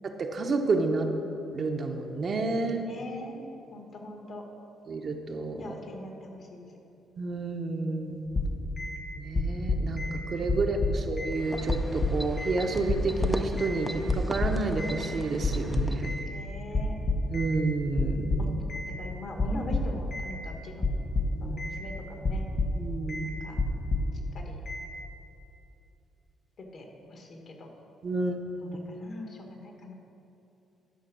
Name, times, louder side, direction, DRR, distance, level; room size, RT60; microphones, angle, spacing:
voice 1, 0.0-1.1 1.5-2.8 4.9-5.7 7.2-8.3 9.2-16.1 17.3-18.5 21.3-21.6 22.7-23.4 28.0-28.7, right 3 dB, 45° right, 3 dB, 0.9 m, -30 dB
voice 2, 2.9-3.4 3.7-4.4 5.6-6.6 10.5-11.0 16.3-16.9 18.4-18.5 18.9-20.8 21.4-22.5 23.2-23.6 24.3-24.6 26.7-27.7 28.6-29.9, left 1 dB, 55° left, 2 dB, 1.7 m, -42 dB
sound 1, 8.3-9.0 9.3-10.2 10.5-11.4 11.7-12.6 12.9-13.8 14.1-15.0 15.4-16.3 16.7-17.6 18.0-18.9 19.4-20.3 20.8-21.8 22.2-22.8 23.1-23.3 23.6-24.2 24.7-24.9, left 3 dB, 40° left, 1.6 m, -29 dB
sound 2, 11.3-16.2, equal, 5° left, 0.6 m, -39 dB
12.0 x 5.0 x 6.2 m, 2.8 s
cardioid pair, 90°, 0 cm